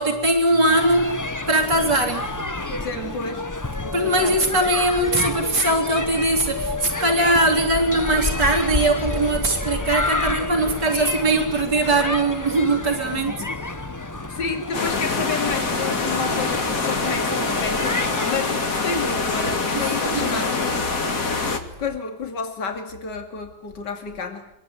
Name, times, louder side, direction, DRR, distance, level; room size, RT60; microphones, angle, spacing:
voice 1, 0.0-2.4 2.9-3.1 3.9-13.4 19.7-20.4 21.3-21.5, right 2 dB, 75° right, 3.8 m, -21 dB
sound 1, 0.7-18.3, left 2 dB, 15° left, 0.7 m, -29 dB
voice 2, 2.7-3.5 3.8-4.4 10.1-10.4 10.9-11.1 13.1-13.6 14.3-20.8 21.8-24.5, left 5 dB, 80° left, 3.1 m, -31 dB
sound 2, 14.7-21.6, left 3 dB, 50° left, 2.6 m, -24 dB
26.0 x 22.0 x 9.5 m
omnidirectional pair, 1.8 m